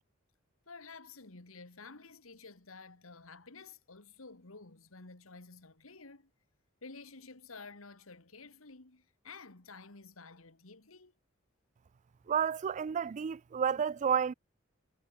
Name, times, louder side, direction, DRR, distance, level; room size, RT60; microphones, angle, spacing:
voice 1, 0.7-6.3 6.8-11.1, left 4 dB, 80° left, 2.1 m, -51 dB
voice 2, 12.3-14.3, right 7 dB, 35° right, 0.3 m, -31 dB
head